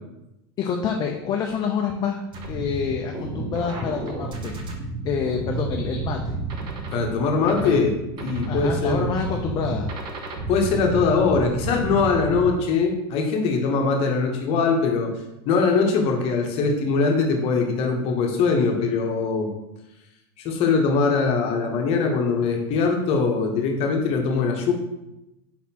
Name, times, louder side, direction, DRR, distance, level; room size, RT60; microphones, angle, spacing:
voice 1, 0.6-4.6 5.0-6.4 7.6-7.8 8.5-9.9, left 6 dB, 30° left, 2 dB, 0.4 m, -27 dB
sound 1, 2.3-12.5, right 3 dB, 35° right, 0.7 m, -31 dB
voice 2, 6.9-9.0 10.5-15.1 15.5-19.5 20.4-24.7, left 4 dB, 50° left, 3 dB, 0.8 m, -22 dB
4.2 x 4.1 x 2.8 m, 0.91 s
supercardioid pair, 135°, 13 cm